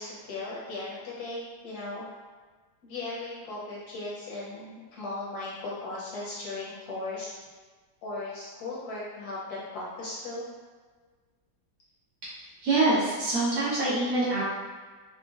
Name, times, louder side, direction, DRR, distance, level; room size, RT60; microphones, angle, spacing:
voice 1, 0.0-2.1 2.8-7.4 8.0-10.5, left 2 dB, 70° left, -6 dB, 1.0 m, -37 dB
voice 2, 12.6-14.4, right 2 dB, 80° right, -10 dB, 2.0 m, -25 dB
4.8 x 2.1 x 2.3 m, 1.4 s
omnidirectional pair, 2.0 m